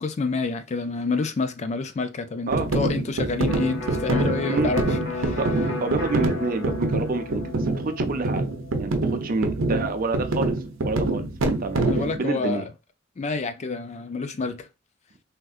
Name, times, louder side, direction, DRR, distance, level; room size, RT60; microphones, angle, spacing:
voice 1, 0.0-4.8 5.2-5.4 11.8-12.6 13.2-14.7, left 4 dB, 35° left, 0.4 m, -28 dB
sound 1, 2.5-12.2, right 2 dB, 90° right, 0.6 m, -26 dB
Electric guitar, 3.5-11.1, left 3 dB, 65° left, 0.9 m, -35 dB
voice 2, 4.4-4.7 5.4-5.5 5.8-8.5 8.8-8.9 9.2-10.6 10.8-11.9 12.2-12.7, right 3 dB, 45° right, 0.5 m, -28 dB
3.5 x 2.6 x 2.3 m
head